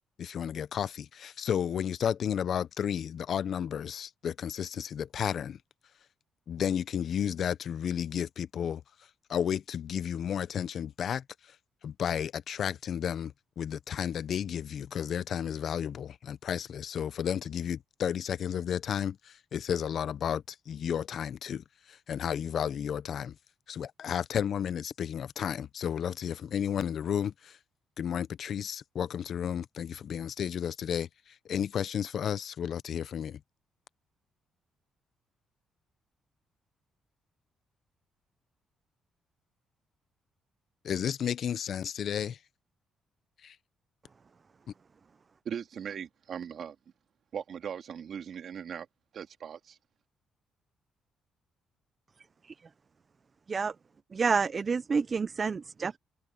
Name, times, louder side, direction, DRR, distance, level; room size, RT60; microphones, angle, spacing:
voice 1, 0.2-5.6 6.5-8.8 9.3-11.6 11.8-23.4 23.7-27.6 28.0-33.4 40.8-42.4 43.4-43.6, left 8 dB, 60° left, 0.7 m, -32 dB
voice 2, 45.5-46.8 47.3-48.9 49.1-49.8, right 8 dB, 60° right, 2.1 m, -39 dB
voice 3, 54.1-56.0, right 5 dB, 40° right, 0.4 m, -28 dB
cardioid pair, 90°, 0 cm